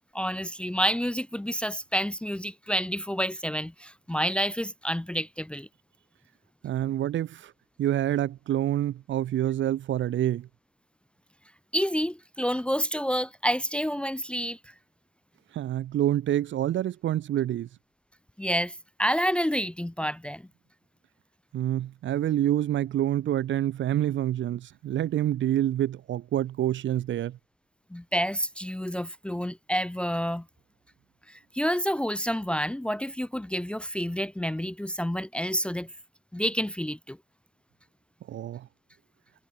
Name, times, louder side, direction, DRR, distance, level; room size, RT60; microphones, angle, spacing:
voice 1, 0.1-5.7 11.7-14.6 18.4-20.4 27.9-30.4 31.3-35.9 36.3-37.2, equal, 5° left, 0.7 m, -29 dB
voice 2, 6.6-7.5 7.8-10.5 15.5-17.7 21.5-27.4 38.3-38.7, right 12 dB, 70° right, 1.5 m, -27 dB
cardioid pair, 90°, 20 cm